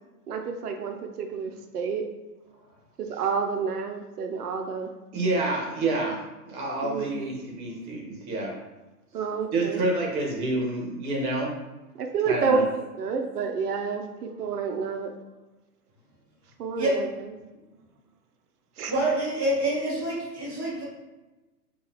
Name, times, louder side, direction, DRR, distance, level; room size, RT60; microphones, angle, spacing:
voice 1, 0.3-2.0 3.0-4.9 6.8-7.2 9.1-9.8 12.0-15.1 16.6-17.3 18.8-18.9, right 5 dB, 70° right, 4 dB, 0.6 m, -29 dB
voice 2, 5.1-6.2 6.4-8.5 9.5-11.5 12.3-12.6, right 2 dB, 30° right, -2 dB, 1.0 m, -28 dB
voice 3, 18.9-20.8, right 1 dB, 20° left, -12 dB, 0.3 m, -26 dB
3.9 x 2.4 x 2.8 m, 1.1 s
hypercardioid pair, 145°, 48 cm